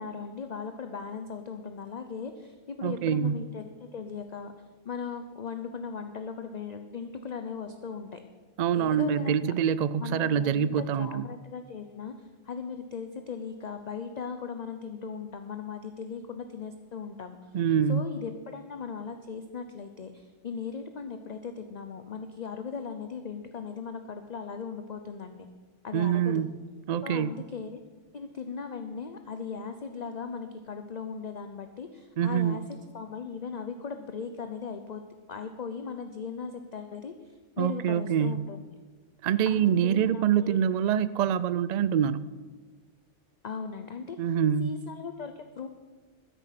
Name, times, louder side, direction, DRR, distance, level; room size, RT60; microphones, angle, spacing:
voice 1, 0.0-4.5 4.8-8.2 8.7-9.5 10.0-17.5 17.9-25.5 25.8-26.4 27.0-27.8 28.1-32.6 32.9-35.0 35.3-38.6 39.4-40.6 40.9-41.0 43.4-44.2 44.6-45.7, left 5 dB, 45° left, 7 dB, 0.7 m, -38 dB
voice 2, 2.8-3.4 8.6-11.3 17.5-18.1 25.9-26.5 26.9-27.3 32.2-32.6 37.6-38.5 39.2-42.3 44.2-44.8, right 8 dB, 70° right, 16 dB, 0.4 m, -25 dB
13.0 x 10.5 x 5.8 m, 1.4 s
omnidirectional pair, 1.2 m